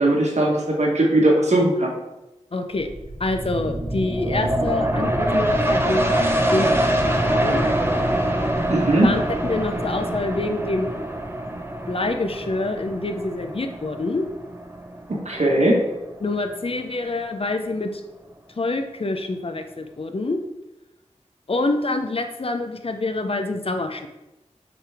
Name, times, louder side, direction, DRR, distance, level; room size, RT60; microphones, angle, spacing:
voice 1, 0.0-1.9 8.7-9.1 15.1-15.8, right 1 dB, 65° right, -1 dB, 1.4 m, -19 dB
voice 2, 2.5-2.9 3.2-7.7 9.0-11.1 11.9-14.2 16.2-18.0 18.6-20.4 21.5-24.1, left 2 dB, 50° left, 6 dB, 0.7 m, -26 dB
sound 1, 2.8-16.1 16.5-16.6, right 1 dB, 20° right, 0.8 m, -24 dB
7.0 x 3.9 x 3.5 m, 0.98 s
cardioid pair, 40°, 12 cm